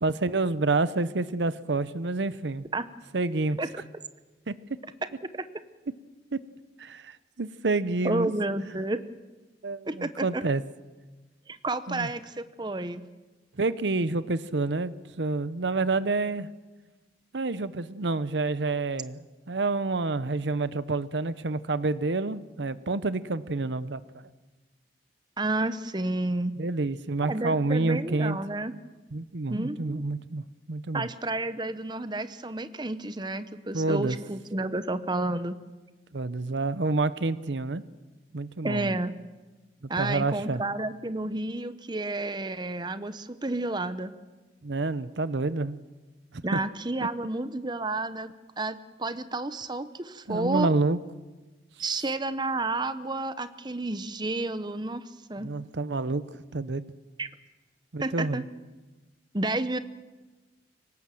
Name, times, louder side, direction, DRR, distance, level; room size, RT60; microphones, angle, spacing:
voice 1, 0.0-2.7 3.1-3.6 4.5-4.6 6.3-6.4 6.8-8.3 9.6-10.6 11.9-12.1 13.6-16.5 17.3-24.0 26.6-28.4 29.1-31.1 33.7-34.2 36.1-37.8 38.3-38.9 39.8-40.6 44.6-45.8 46.3-46.6 47.0-47.1 50.3-51.0 55.4-56.9 57.9-58.4, right 3 dB, 90° right, 15 dB, 0.8 m, -28 dB
voice 2, 8.0-9.0 9.9-10.4 11.5-13.0 25.4-26.6 27.2-28.7 29.5-30.0 30.9-35.6 38.6-39.1 39.9-44.1 46.4-48.3 48.6-50.7 51.8-55.0 55.3-55.5 57.2-57.3 58.0-58.4 59.3-59.8, right 2 dB, 25° right, 12 dB, 0.9 m, -31 dB
25.5 x 18.0 x 7.7 m, 1.2 s
head